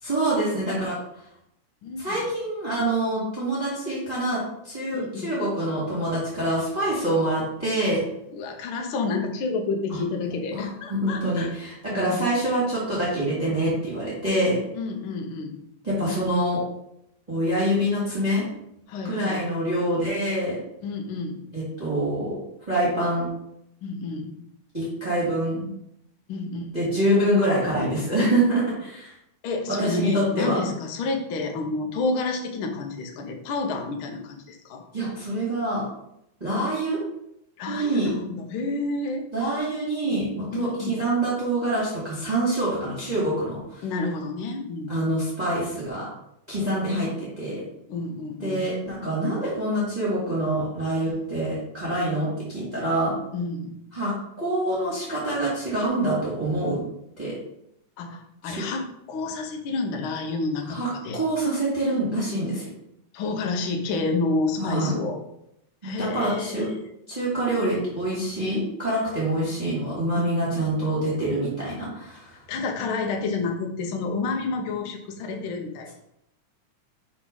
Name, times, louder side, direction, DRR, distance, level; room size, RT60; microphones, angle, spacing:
voice 1, 0.0-1.0 2.0-8.0 9.9-10.0 10.5-14.6 15.8-16.6 17.3-18.4 19.0-20.6 21.5-22.4 22.7-23.3 24.7-25.7 26.7-29.1 29.7-30.6 34.9-35.8 36.4-37.0 37.7-38.1 39.3-43.8 44.9-46.1 46.5-47.6 48.4-53.1 53.9-56.8 57.2-57.4 58.4-58.5 60.7-62.7 64.6-64.9 65.8-66.7 67.1-72.4, right 1 dB, 15° right, -8 dB, 1.9 m, -25 dB
voice 2, 1.8-2.2 4.9-5.3 8.3-11.5 11.9-12.2 14.7-15.6 18.9-19.4 20.8-21.4 23.8-24.3 26.3-26.6 29.4-34.8 37.6-39.2 40.5-41.0 43.8-45.0 47.9-48.7 51.1-51.2 51.9-52.0 53.3-53.7 58.0-61.2 63.1-65.2 65.8-66.7 70.1-70.4 72.5-75.9, left 3 dB, 70° left, 3 dB, 1.2 m, -29 dB
5.0 x 4.2 x 5.3 m, 0.79 s
omnidirectional pair, 3.4 m